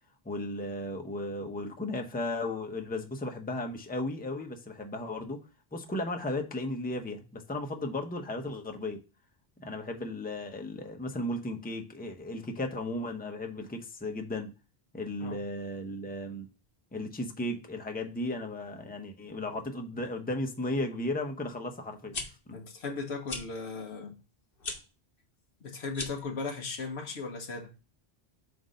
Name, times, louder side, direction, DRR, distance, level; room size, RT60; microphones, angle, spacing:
voice 1, 0.2-5.4 5.7-9.0 9.6-14.5 14.9-16.5 16.9-22.2, left 1 dB, 10° left, 0.7 m, -35 dB
sound 1, 21.9-22.2 23.2-23.4 24.6-24.8 25.9-26.3, left 3 dB, 60° left, 1.3 m, -37 dB
voice 2, 22.5-24.2 25.6-27.7, left 4 dB, 85° left, 1.3 m, -37 dB
7.7 x 2.6 x 5.1 m
omnidirectional pair, 1.1 m